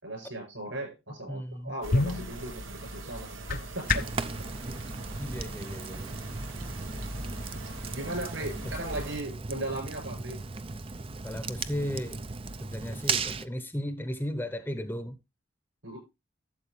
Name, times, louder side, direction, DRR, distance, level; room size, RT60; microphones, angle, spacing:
voice 1, 0.0-4.1 7.9-10.4 15.8-16.0, right 1 dB, 70° right, 7.5 m, -37 dB
voice 2, 1.3-1.7 5.2-6.2 8.4-8.7 11.2-12.2 12.6-15.2, equal, 10° left, 0.9 m, -35 dB
sound 1, 1.4-4.3, left 3 dB, 45° left, 0.7 m, -31 dB
sound 2, 1.8-9.2, right 1 dB, 90° right, 1.5 m, -41 dB
Fire, 3.9-13.5, right 4 dB, 30° right, 0.5 m, -36 dB
12.5 x 8.0 x 3.2 m
head